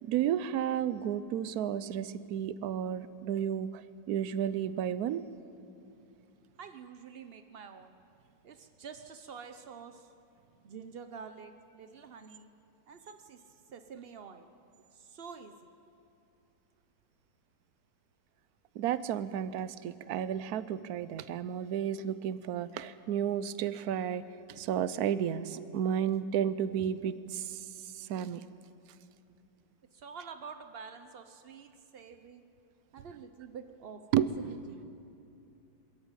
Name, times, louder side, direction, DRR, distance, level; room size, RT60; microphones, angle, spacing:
voice 1, 0.0-5.2 18.7-28.4 34.1-34.6, right 9 dB, 65° right, 15 dB, 1.0 m, -32 dB
voice 2, 6.6-8.0 8.4-10.1 10.6-12.5 12.9-14.5 14.9-15.7 29.9-32.4 32.9-34.8, right 6 dB, 85° right, 8 dB, 0.5 m, -48 dB
22.0 x 13.5 x 8.9 m, 2.6 s
omnidirectional pair, 2.0 m